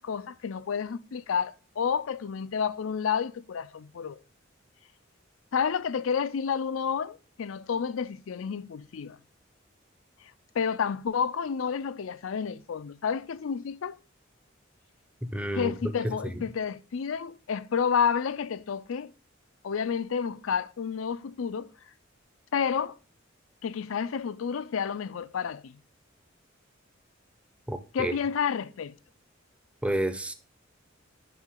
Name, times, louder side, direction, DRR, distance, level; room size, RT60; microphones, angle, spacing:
voice 1, 0.0-4.2 5.5-9.2 10.2-14.0 15.5-19.1 19.6-21.7 22.5-23.0 23.6-25.8 27.9-29.0, left 6 dB, 80° left, 0.4 m, -30 dB
voice 2, 15.2-15.7 16.0-16.3 27.7-28.1 29.8-30.3, right 1 dB, 5° right, 0.6 m, -30 dB
9.2 x 5.8 x 3.7 m
head